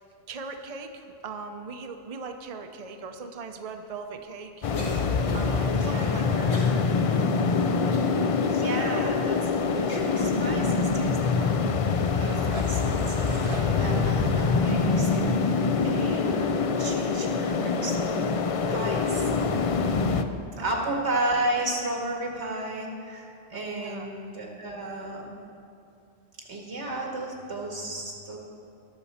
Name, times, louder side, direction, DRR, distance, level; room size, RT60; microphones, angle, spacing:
voice 1, 0.3-4.7 5.3-6.6 6.9-7.3 8.6-9.1 9.7-10.0 19.9-20.9 23.5-24.1, right 4 dB, 40° right, 5 dB, 0.7 m, -40 dB
sound 1, 4.6-20.2, left 4 dB, 50° left, 0.4 m, -25 dB
Cough, 4.7-5.5 6.5-6.8 7.3-7.4 7.9-8.6 9.2-9.3 9.9-10.2, left 2 dB, 90° left, 2.0 m, -37 dB
voice 2, 5.7-6.5 8.5-16.5 16.8-19.3 20.6-25.3 26.5-28.4, right 1 dB, 85° right, -1 dB, 2.0 m, -33 dB
sound 2, 12.1-17.0, equal, 55° right, 1.2 m, -36 dB
19.5 x 7.0 x 4.3 m, 2.6 s
omnidirectional pair, 1.1 m